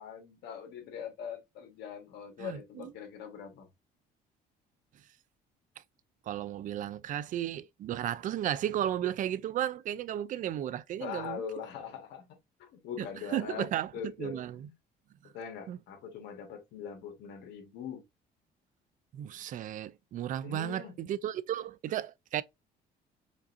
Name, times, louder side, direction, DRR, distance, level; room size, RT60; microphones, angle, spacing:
voice 1, 0.0-3.7 11.0-14.7 15.3-18.0 20.4-21.0, left 7 dB, 85° left, 1.4 m, -42 dB
voice 2, 2.4-2.9 6.3-11.4 13.0-13.9 14.2-14.7 15.7-15.8 19.1-22.4, right 11 dB, 50° right, 0.4 m, -34 dB
5.1 x 2.6 x 2.5 m
cardioid pair, 110°, 17 cm